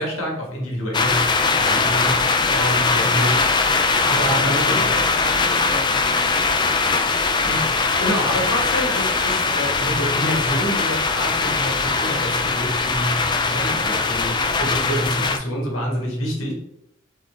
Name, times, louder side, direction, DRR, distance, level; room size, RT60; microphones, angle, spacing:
voice 1, 0.0-5.0 7.3-16.5, equal, 85° left, -1 dB, 1.5 m, -27 dB
sound 1, 0.9-15.4, left 4 dB, 20° left, 0.3 m, -21 dB
voice 2, 4.6-6.8 13.7-13.9 14.4-14.5, equal, 45° right, 0 dB, 1.0 m, -36 dB
3.8 x 3.8 x 3.6 m, 0.80 s
head